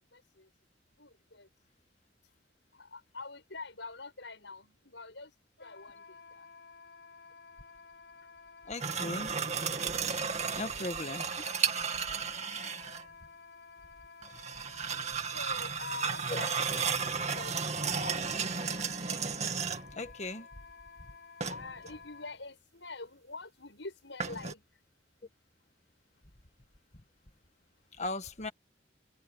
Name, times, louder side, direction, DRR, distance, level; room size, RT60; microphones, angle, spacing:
voice 1, 0.1-0.5 1.0-1.5 2.7-5.3 5.6-6.0 6.3-6.5 10.4-10.5 15.3-18.2 21.4-24.6, left 3 dB, 80° left, 6.9 m, -45 dB
Wind instrument woodwind instrument, 5.6-22.4, left 5 dB, 65° left, 7.3 m, -53 dB
voice 2, 8.7-9.3 10.6-11.3 16.3-16.4 20.0-20.5 28.0-28.5, left 2 dB, 40° left, 1.7 m, -37 dB
sound 1, 8.8-13.0 14.2-20.0 21.4-22.0 24.2-24.5, right 5 dB, 35° right, 2.2 m, -34 dB
open air
head